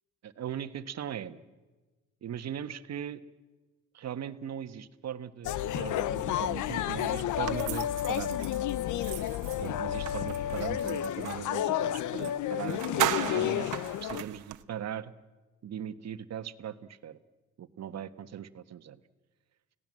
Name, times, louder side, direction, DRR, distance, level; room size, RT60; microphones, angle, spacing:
voice 1, 0.2-1.4 2.2-3.2 3.9-8.4 9.6-15.1 15.6-17.2 17.6-19.0, right 9 dB, 60° right, 12 dB, 1.3 m, -39 dB
sound 1, 5.4-14.2, left 12 dB, 80° left, 0.9 m, -31 dB
sound 2, 7.4-11.5 12.2-12.3 12.6-14.6, right 14 dB, 90° right, 1.1 m, -36 dB
29.5 x 18.0 x 7.6 m, 1.2 s
cardioid pair, 90°, 30 cm